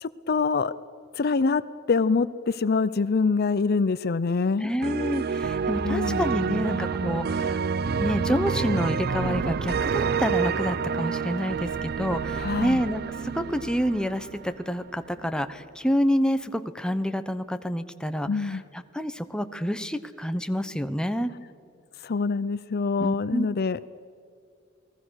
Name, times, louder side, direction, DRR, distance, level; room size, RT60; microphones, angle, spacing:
voice 1, 0.0-0.7 1.2-1.6 1.9-4.7 5.8-6.2 12.3-12.8 18.3-18.6 22.0-23.9, left 4 dB, 50° left, 16 dB, 0.5 m, -25 dB
voice 2, 4.6-7.6 7.9-21.3 23.0-23.5, equal, 5° left, 9 dB, 0.9 m, -28 dB
sound 1, 4.8-14.9, right 5 dB, 50° right, 0.5 m, -28 dB
29.0 x 19.5 x 6.4 m, 2.3 s
head